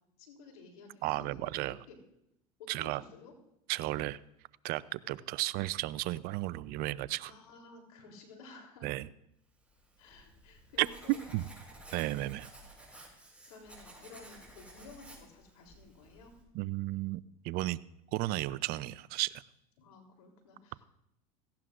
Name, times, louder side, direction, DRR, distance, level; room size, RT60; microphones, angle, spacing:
voice 1, 0.2-1.6 1.9-2.0 2.6-3.3 7.2-8.9 10.0-11.2 13.4-16.4 19.8-20.9, left 3 dB, 85° left, 2 dB, 3.4 m, -53 dB
voice 2, 1.0-1.8 2.7-3.0 3.7-4.2 4.6-7.3 8.8-9.1 10.8-10.9 11.3-11.4 11.9-12.5 16.5-17.8 18.1-19.3, right 17 dB, 55° right, 19 dB, 0.6 m, -34 dB
Writing, 9.7-16.4, right 1 dB, 5° right, 6.0 m, -54 dB
17.5 x 16.0 x 2.5 m, 0.79 s
hypercardioid pair, 95°, 18 cm